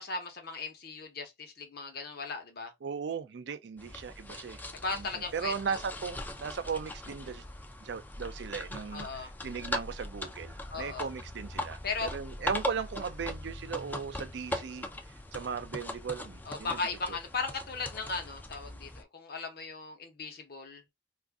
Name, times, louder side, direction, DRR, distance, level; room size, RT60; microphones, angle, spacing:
voice 1, 0.0-2.7 4.7-5.5 8.9-9.3 10.7-11.1 11.8-12.1 16.4-20.8, left 4 dB, 60° left, 0.9 m, -37 dB
voice 2, 2.8-4.6 4.9-5.1 5.3-7.4 7.8-14.9 15.3-16.8 17.1-17.2, right 6 dB, 70° right, 0.4 m, -37 dB
sound 1, 3.8-19.0, left 1 dB, 10° left, 0.3 m, -40 dB
2.5 x 2.4 x 3.5 m
head